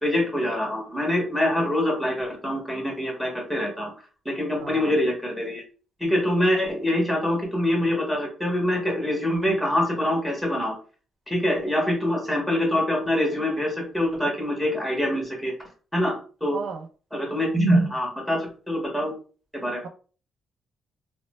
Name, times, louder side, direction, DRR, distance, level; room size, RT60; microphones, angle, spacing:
voice 1, 0.0-3.9 4.2-5.6 6.0-10.7 11.3-15.5 15.9-16.1 16.4-16.6 17.1-19.1 19.5-19.8, left 1 dB, ahead, 1.4 m, -24 dB
voice 2, 4.6-4.9 16.5-16.9, right 5 dB, 65° right, 0.4 m, -34 dB
3.0 x 2.1 x 3.0 m
cardioid pair, 90°, 0 cm